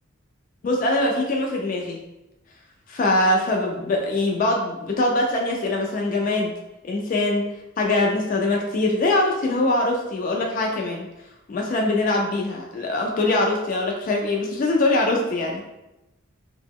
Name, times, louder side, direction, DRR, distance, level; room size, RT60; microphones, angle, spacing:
voice 1, 0.6-2.0 2.9-6.5 6.8-7.5 7.8-11.1 11.5-15.6, left 2 dB, 40° left, 0 dB, 0.3 m, -22 dB
2.8 x 2.0 x 3.5 m, 0.98 s
head